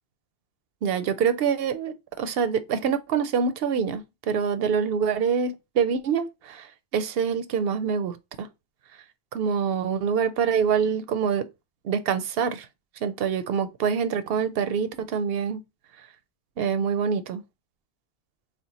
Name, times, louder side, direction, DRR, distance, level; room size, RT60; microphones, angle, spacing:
voice 1, 0.8-6.7 6.9-8.5 9.3-11.5 11.8-12.7 13.0-15.6 16.6-17.4, right 6 dB, 70° right, 0.8 m, -25 dB
4.4 x 2.1 x 3.9 m
omnidirectional pair, 1.1 m